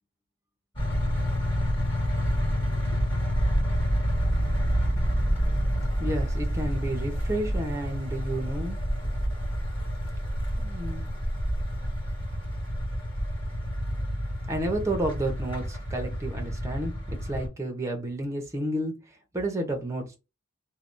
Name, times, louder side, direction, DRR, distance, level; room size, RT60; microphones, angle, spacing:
sound 1, 0.8-17.5, equal, 25° left, 1.8 m, -28 dB
voice 1, 6.0-8.8 10.6-11.1 14.5-19.0 19.3-20.2, right 1 dB, 15° right, 0.8 m, -31 dB
3.3 x 2.3 x 2.5 m
head